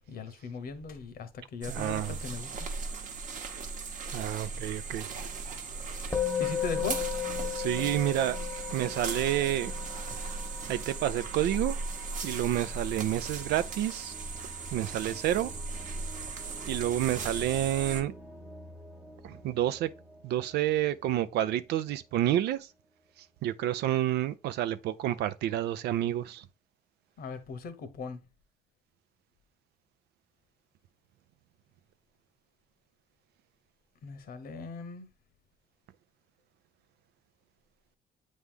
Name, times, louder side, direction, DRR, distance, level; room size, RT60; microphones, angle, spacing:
voice 1, 0.1-2.7 6.4-7.0 27.2-28.2 34.0-35.1, left 5 dB, 60° left, 1.2 m, -39 dB
sound 1, 1.6-18.0, right 4 dB, 50° right, 1.0 m, -37 dB
voice 2, 1.7-2.2 4.1-5.1 7.4-8.4 8.7-9.7 10.7-11.8 12.2-14.1 14.7-15.5 16.7-18.1 19.2-19.9 20.2-22.7 23.2-26.5, right 12 dB, 75° right, 0.6 m, -29 dB
Musical instrument, 6.1-15.6, left 9 dB, 15° left, 0.9 m, -37 dB
sound 2, 12.8-22.6, equal, 10° right, 0.7 m, -50 dB
8.2 x 3.1 x 3.6 m
cardioid pair, 110°, 17 cm